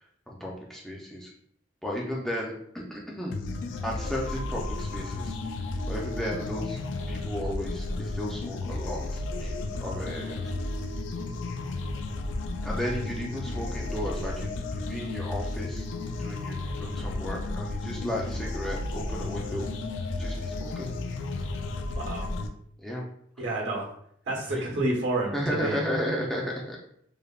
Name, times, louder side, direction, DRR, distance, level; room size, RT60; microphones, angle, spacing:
voice 1, 0.3-1.3 1.8-3.4 3.8-5.4 5.9-6.8 7.1-10.5 12.6-15.9 16.2-19.7 20.2-20.9 22.8-23.0 24.5-24.6 25.3-26.8, equal, ahead, -3 dB, 0.4 m, -34 dB
sound 1, 3.3-22.5, left 2 dB, 80° left, 0.3 m, -33 dB
voice 2, 22.0-22.3 23.4-23.9 24.3-25.8, right 2 dB, 75° right, -2 dB, 0.9 m, -29 dB
3.2 x 2.1 x 2.3 m, 0.67 s
head